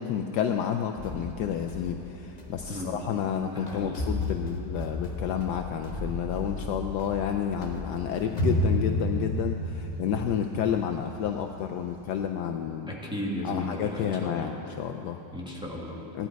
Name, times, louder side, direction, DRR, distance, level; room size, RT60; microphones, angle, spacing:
voice 1, 0.0-12.9 13.4-15.2 16.1-16.3, left 8 dB, 85° left, 5 dB, 0.9 m, -30 dB
sound 1, 1.0-12.2, left 1 dB, 30° left, 0.7 m, -33 dB
voice 2, 2.7-4.0 12.9-14.6 15.3-16.0, equal, ahead, -5 dB, 1.5 m, -35 dB
16.0 x 11.5 x 4.6 m, 2.9 s
omnidirectional pair, 2.3 m